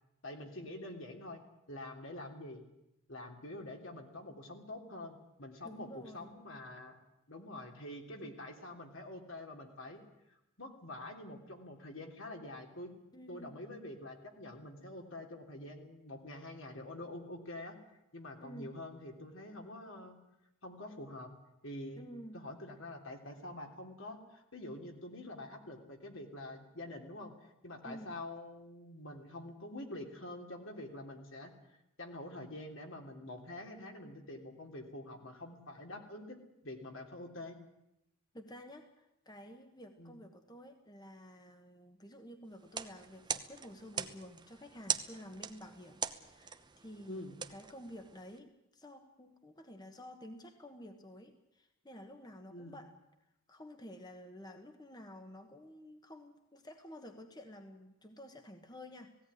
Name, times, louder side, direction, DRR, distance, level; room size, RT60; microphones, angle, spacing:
voice 1, 0.2-1.4 1.7-2.6 3.1-7.0 7.3-10.0 10.6-12.9 13.3-17.8 18.1-20.2 20.6-21.3 21.6-22.1 22.3-27.3 27.6-31.5 32.0-37.6 40.0-40.2 47.1-47.4 52.5-52.8, left 1 dB, 70° left, 3 dB, 3.3 m, -46 dB
voice 2, 5.6-6.3 13.1-13.6 18.4-18.8 22.0-22.4 27.8-28.2 38.3-47.2 47.5-52.9 53.5-59.2, equal, 20° left, 5 dB, 1.3 m, -51 dB
sound 1, 42.6-48.4, right 7 dB, 20° right, 0.9 m, -42 dB
17.5 x 17.0 x 9.8 m, 0.88 s
head